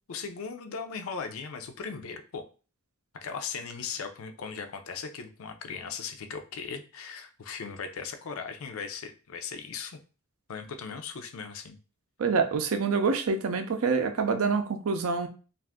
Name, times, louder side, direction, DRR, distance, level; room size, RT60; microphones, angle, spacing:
voice 1, 0.1-2.4 3.1-10.0 10.5-11.8, left 5 dB, 70° left, 7 dB, 0.5 m, -38 dB
voice 2, 12.2-15.3, right 4 dB, 80° right, 7 dB, 0.5 m, -26 dB
2.5 x 2.4 x 3.5 m, 0.36 s
head